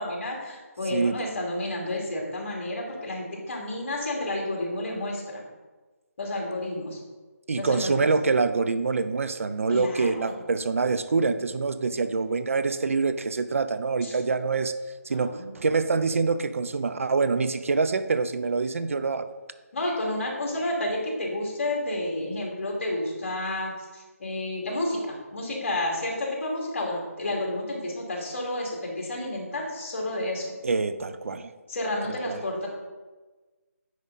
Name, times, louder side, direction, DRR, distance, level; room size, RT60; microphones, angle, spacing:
voice 1, 0.0-5.4 6.2-7.0 7.6-8.1 9.7-10.4 14.0-14.2 15.1-15.5 19.7-30.5 31.7-32.7, left 1 dB, 50° left, -2 dB, 2.7 m, -31 dB
voice 2, 0.9-1.3 7.5-14.8 15.0-19.3 30.6-31.5 32.3-32.4, right 4 dB, 60° right, 11 dB, 0.6 m, -25 dB
9.4 x 4.9 x 4.1 m, 1.3 s
figure-of-eight pair, 165°, 8 cm